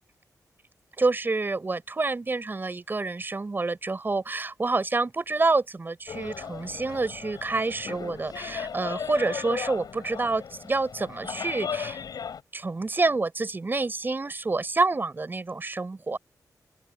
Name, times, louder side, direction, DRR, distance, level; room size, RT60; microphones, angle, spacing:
voice 1, 1.0-12.0 12.5-16.2, right 3 dB, 30° right, 6.0 m, -28 dB
sound 1, 6.1-12.4, left 7 dB, 75° left, 5.1 m, -36 dB
open air
wide cardioid pair, 110°, 7 cm